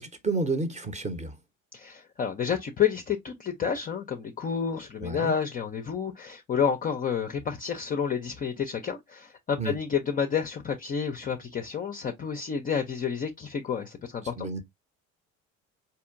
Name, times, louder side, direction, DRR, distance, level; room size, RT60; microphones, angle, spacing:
voice 1, 0.0-1.4 5.0-5.3 9.6-9.8 14.4-14.6, right 3 dB, 15° right, 0.7 m, -30 dB
voice 2, 1.7-14.6, left 7 dB, 20° left, 0.4 m, -30 dB
4.3 x 2.8 x 2.4 m
figure-of-eight pair, 60°, 43 cm